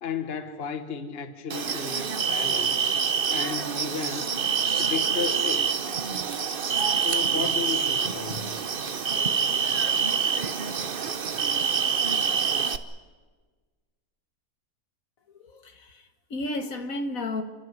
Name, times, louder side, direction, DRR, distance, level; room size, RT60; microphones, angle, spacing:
voice 1, 0.0-2.9 3.3-4.4 4.8-5.6 7.0-8.6, left 6 dB, 40° left, 1.4 m, -34 dB
sound 1, 1.5-12.8, right 6 dB, 40° right, 1.0 m, -26 dB
voice 2, 15.3-17.4, left 2 dB, 65° left, 1.8 m, -33 dB
29.5 x 12.5 x 9.5 m
omnidirectional pair, 1.6 m